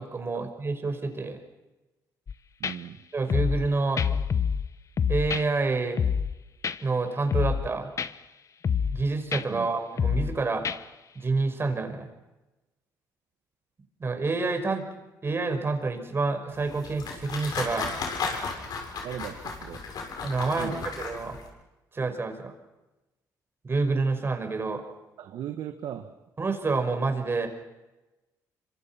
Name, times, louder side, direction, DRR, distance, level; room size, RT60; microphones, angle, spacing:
voice 1, 0.0-1.4 3.1-4.2 5.1-6.0 6.8-7.9 8.9-10.6 11.2-12.1 14.0-14.9 15.2-17.9 20.2-21.4 21.9-22.5 23.6-24.8 26.4-27.5, right 3 dB, 30° right, 6 dB, 5.3 m, -28 dB
sound 1, 2.3-2.4 2.6-2.7 3.3-3.7 4.0-4.7 5.0-5.4 6.0-6.3 6.6-6.8 7.3-7.7 8.0-8.1 8.6-9.0 9.3-9.4 10.0-10.3 10.6-10.8, left 7 dB, 45° left, 1.1 m, -26 dB
voice 2, 2.6-3.0 9.5-9.7 19.0-19.8 20.6-20.9 25.2-26.2, right 10 dB, 75° right, 7 dB, 1.7 m, -38 dB
sound 2, 16.5-21.5, left 4 dB, 65° left, 7.4 m, -35 dB
26.5 x 26.0 x 6.0 m, 1.1 s
cardioid pair, 85°, 7 cm